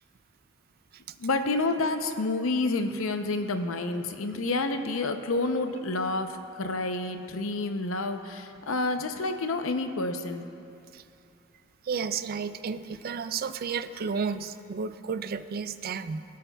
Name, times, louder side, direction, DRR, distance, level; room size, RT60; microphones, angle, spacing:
voice 1, 1.2-10.5, left 2 dB, 75° left, 7 dB, 0.6 m, -29 dB
voice 2, 11.8-16.2, right 5 dB, 50° right, 12 dB, 0.4 m, -32 dB
24.0 x 8.4 x 2.3 m, 2.6 s
head